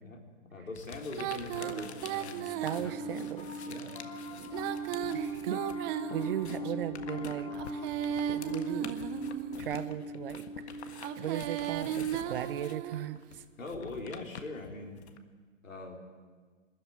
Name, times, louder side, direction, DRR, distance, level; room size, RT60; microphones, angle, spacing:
voice 1, 0.5-2.5 2.7-3.0 3.7-3.9 13.6-15.0 15.6-16.0, left 2 dB, 90° left, 1 dB, 4.3 m, -42 dB
sound 1, 0.8-5.8 6.1-15.2, left 7 dB, 55° left, 1.7 m, -48 dB
Female singing, 1.1-3.3 4.4-6.7 7.5-9.7 10.9-13.2, right 12 dB, 20° right, 0.7 m, -36 dB
Piano, 1.8-13.3, right 1 dB, 15° left, 2.2 m, -40 dB
voice 2, 2.4-3.5 5.1-7.6 8.3-9.0 9.6-10.6 11.2-13.4, right 10 dB, 45° right, 13 dB, 1.2 m, -37 dB
21.5 x 13.5 x 9.6 m, 1.5 s
hypercardioid pair, 135°, 38 cm